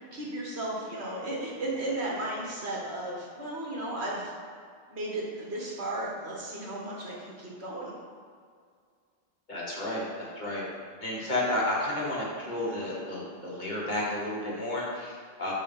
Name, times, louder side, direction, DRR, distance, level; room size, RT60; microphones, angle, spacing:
voice 1, 0.1-4.3 4.9-7.9, right 1 dB, 70° right, -3 dB, 1.6 m, -34 dB
voice 2, 9.5-10.6 11.0-15.5, left 1 dB, 45° left, -5 dB, 1.5 m, -32 dB
5.5 x 4.1 x 5.5 m, 2.1 s
omnidirectional pair, 1.2 m